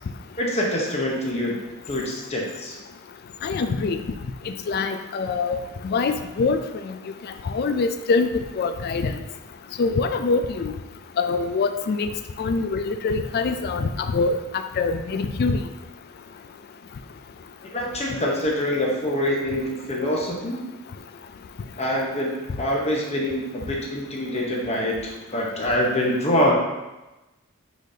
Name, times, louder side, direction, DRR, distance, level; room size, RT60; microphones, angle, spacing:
voice 1, 0.4-1.6 1.9-2.8 17.7-20.6 21.8-26.5, left 1 dB, 30° left, -2 dB, 0.9 m, -25 dB
voice 2, 3.4-4.0 4.5-5.6 5.8-6.6 6.8-6.9 7.5-8.3 8.6-9.2 9.8-10.7 11.2-12.1 12.4-14.4 14.8-15.6, left 4 dB, 45° left, 8 dB, 0.3 m, -24 dB
4.9 x 4.0 x 2.7 m, 1.0 s
head